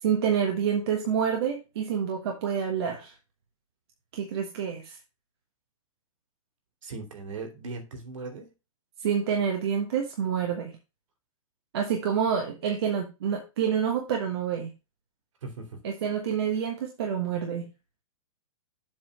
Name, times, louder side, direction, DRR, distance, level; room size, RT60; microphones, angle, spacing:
voice 1, 0.0-3.1 4.1-5.0 9.0-10.8 11.7-14.7 15.8-17.7, right 7 dB, 45° right, 2 dB, 1.3 m, -28 dB
voice 2, 6.8-8.5 15.4-15.8, right 3 dB, 65° right, 4 dB, 3.0 m, -38 dB
7.5 x 4.0 x 6.4 m, 0.29 s
hypercardioid pair, 175°, 18 cm